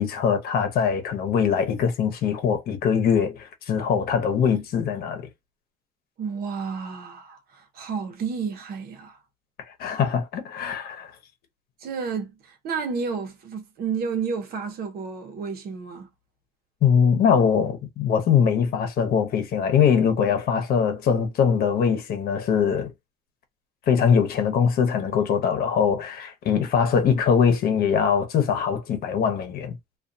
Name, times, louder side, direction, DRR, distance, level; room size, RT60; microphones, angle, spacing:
voice 1, 0.0-5.3 9.8-11.1 16.8-22.9 23.9-29.8, left 7 dB, 65° left, 0.9 m, -22 dB
voice 2, 6.2-9.2 11.8-16.1, right 5 dB, 65° right, 0.9 m, -31 dB
2.4 x 2.3 x 2.7 m
cardioid pair, 110°, 17 cm